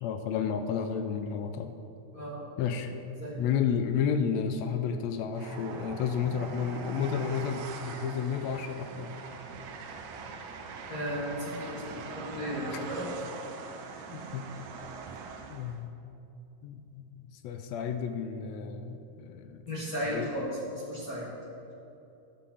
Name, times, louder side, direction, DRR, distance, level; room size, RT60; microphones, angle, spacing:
voice 1, 0.0-1.7 2.6-2.9 3.4-9.1 12.7-12.8 14.1-14.5 15.5-16.0 16.6-17.1 17.4-19.6 20.1-20.3, left 7 dB, 80° left, 7 dB, 1.6 m, -31 dB
voice 2, 2.1-2.8 3.2-3.4 10.9-13.1 19.7-21.3, equal, 50° left, -5 dB, 1.1 m, -35 dB
Train, 5.3-15.8, right 4 dB, 85° right, 2.0 m, -42 dB
11.5 x 3.8 x 7.0 m, 2.8 s
omnidirectional pair, 3.5 m